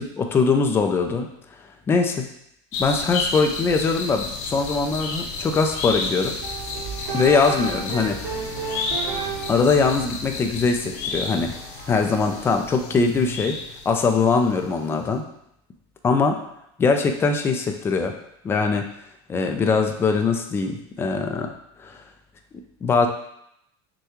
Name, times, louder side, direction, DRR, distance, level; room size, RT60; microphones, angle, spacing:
voice 1, 0.2-1.3 1.9-2.3 2.8-6.3 7.1-8.2 9.5-11.5 11.9-13.6 13.9-15.2 16.0-16.4 16.8-18.1 18.4-18.8 19.3-21.5 21.8-22.0 22.8-23.1, left 4 dB, 15° left, 5 dB, 0.4 m, -21 dB
sound 1, 2.7-14.4 14.6-14.7, left 3 dB, 55° left, 0.8 m, -32 dB
sound 2, 6.1-7.1 7.9-13.9, right 3 dB, 30° right, 0.6 m, -42 dB
sound 3, 6.4-9.8, right 6 dB, 60° right, 0.9 m, -31 dB
6.3 x 2.3 x 3.0 m, 0.76 s
supercardioid pair, 130°, 13 cm